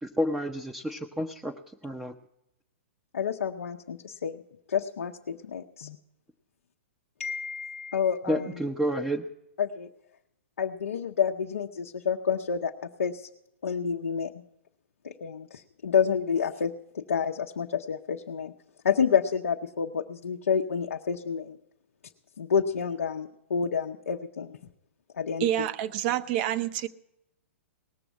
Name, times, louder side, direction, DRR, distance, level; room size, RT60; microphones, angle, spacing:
voice 1, 0.0-1.5 1.8-2.1 8.3-9.2, equal, 5° right, 0.6 m, -30 dB
voice 2, 3.1-4.4 4.7-6.0 7.2-8.6 9.6-9.9 10.6-12.7 13.0-13.3 13.6-14.3 15.0-18.5 18.8-21.6 22.4-24.6 25.1-25.5, left 7 dB, 85° left, 0.8 m, -29 dB
voice 3, 25.4-26.9, right 12 dB, 45° right, 0.7 m, -27 dB
19.0 x 6.9 x 7.4 m
hypercardioid pair, 130°, 7 cm